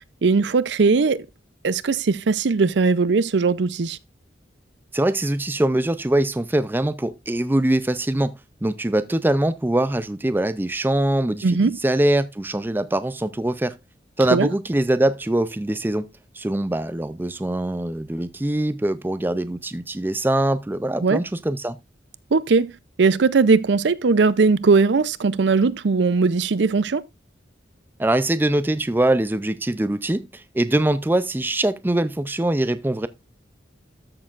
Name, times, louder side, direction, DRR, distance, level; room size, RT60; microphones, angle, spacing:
voice 1, 0.2-1.3 1.6-4.0 11.4-11.8 14.3-14.5 21.0-21.2 22.3-22.7 23.0-27.0, right 4 dB, 70° right, 0.5 m, -19 dB
voice 2, 4.9-8.3 8.6-13.8 14.2-16.1 16.3-21.8 28.0-33.1, right 1 dB, 10° right, 0.4 m, -23 dB
13.5 x 6.7 x 2.4 m
head